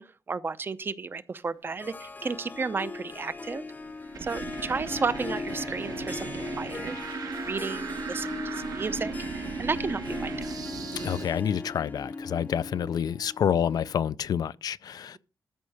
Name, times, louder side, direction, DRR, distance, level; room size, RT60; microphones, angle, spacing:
voice 1, 0.0-3.6 4.2-6.9 7.2-10.6, right 4 dB, 35° right, 0.6 m, -33 dB
Harp, 1.8-14.0, left 3 dB, 25° left, 0.5 m, -39 dB
sound 1, 3.1-11.3, right 5 dB, 65° right, 1.1 m, -37 dB
voice 2, 11.0-15.2, left 8 dB, 80° left, 0.4 m, -28 dB
13.5 x 5.5 x 6.4 m
wide cardioid pair, 155°, 7 cm